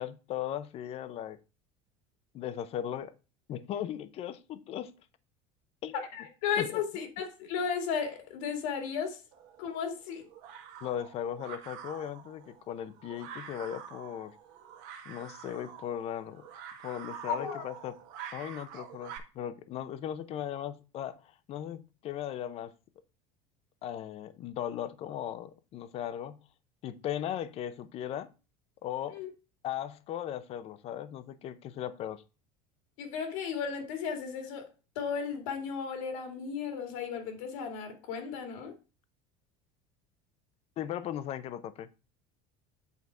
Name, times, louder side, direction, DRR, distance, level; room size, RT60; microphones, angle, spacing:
voice 1, 0.0-1.4 2.3-3.1 3.5-4.9 5.8-5.9 6.6-6.8 10.8-14.4 15.1-16.4 16.8-17.9 18.3-22.7 23.8-26.4 26.8-28.3 28.8-29.2 29.6-32.2 40.8-42.0, left 10 dB, 40° left, 0.6 m, -37 dB
voice 2, 5.9-9.2 9.6-10.2 17.3-17.7 29.1-29.3 33.0-34.7 35.0-38.7, left 6 dB, 80° left, 2.3 m, -34 dB
sound 1, 9.3-19.2, right 8 dB, 60° right, 1.5 m, -47 dB
8.2 x 4.1 x 4.6 m
cardioid pair, 150°, 16 cm